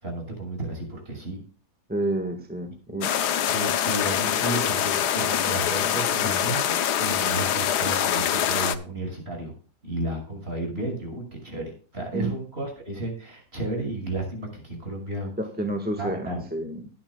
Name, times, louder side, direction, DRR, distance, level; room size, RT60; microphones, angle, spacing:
voice 1, 0.0-1.4 2.9-3.0 3.5-9.5 9.8-15.3 16.0-16.4, right 2 dB, 40° right, 1 dB, 6.2 m, -33 dB
voice 2, 1.9-3.1 12.1-12.3 15.4-16.9, right 1 dB, 5° right, 4 dB, 1.5 m, -29 dB
sound 1, 3.0-8.7, left 9 dB, 85° left, 1.4 m, -24 dB
20.0 x 10.0 x 2.3 m, 0.38 s
omnidirectional pair, 1.7 m